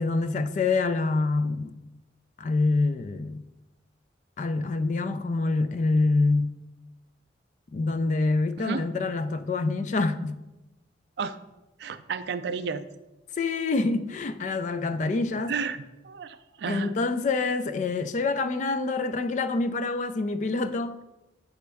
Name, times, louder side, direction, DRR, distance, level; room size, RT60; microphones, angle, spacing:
voice 1, 0.0-1.8 2.4-3.4 4.4-6.5 7.7-10.4 13.4-15.5 16.7-21.0, left 3 dB, 40° left, 0.3 m, -26 dB
voice 2, 11.8-12.8 15.0-15.1 15.5-17.0, right 5 dB, 60° right, 0.3 m, -32 dB
7.8 x 4.2 x 3.4 m
head